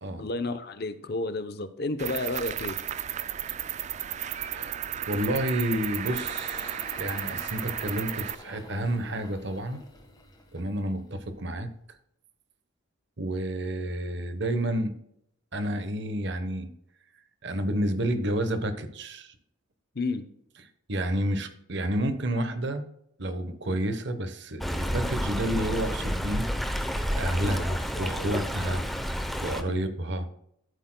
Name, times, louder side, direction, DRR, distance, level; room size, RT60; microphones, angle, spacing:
voice 1, 0.2-2.8 19.9-20.2 27.4-28.8 29.6-29.9, left 2 dB, 50° left, 10 dB, 0.7 m, -32 dB
Cricket, 2.0-8.4, right 10 dB, 35° right, 0.3 m, -34 dB
Engine, 5.1-11.7, left 2 dB, 20° left, 1.4 m, -47 dB
voice 2, 5.1-9.8 10.5-11.7 13.2-15.0 15.5-16.7 17.4-19.3 20.9-22.8 23.2-26.5 27.2-28.8 29.4-30.3, right 1 dB, 55° right, 9 dB, 1.1 m, -30 dB
Stream, 24.6-29.6, equal, ahead, 0.7 m, -30 dB
14.0 x 8.1 x 2.2 m, 0.72 s
head